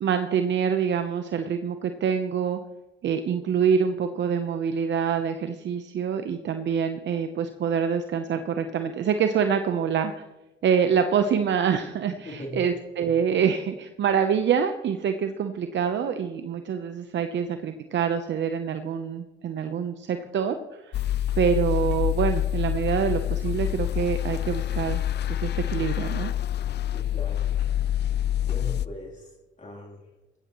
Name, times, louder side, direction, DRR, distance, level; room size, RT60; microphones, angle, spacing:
voice 1, 0.0-2.6 3.0-10.1 10.6-21.0 21.4-25.0 25.3-26.3, right 7 dB, 65° right, 8 dB, 0.9 m, -26 dB
voice 2, 12.3-12.6 26.9-27.5 28.4-29.3 29.6-30.0, left 1 dB, 35° left, -2 dB, 3.5 m, -39 dB
sound 1, 20.9-28.9, left 11 dB, 55° left, 0.4 m, -27 dB
15.5 x 15.0 x 3.1 m, 1.0 s
supercardioid pair, 60°, 20 cm